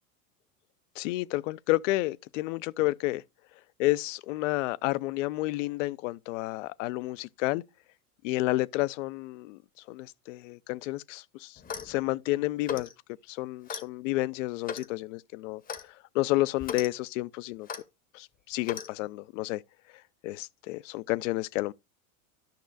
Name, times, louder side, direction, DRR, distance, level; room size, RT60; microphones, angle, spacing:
voice 1, 1.0-3.2 3.8-7.6 8.2-9.6 9.9-12.9 13.3-17.7 18.1-19.6 20.2-21.7, left 18 dB, 65° left, 0.5 m, -30 dB
Clock, 11.6-12.0 12.6-12.9 13.7-13.9 14.6-14.9 15.7-15.9 16.6-16.9 17.7-17.8 18.6-18.9, left 7 dB, 20° left, 0.7 m, -37 dB
12.0 x 6.1 x 2.5 m
hypercardioid pair, 100°, 42 cm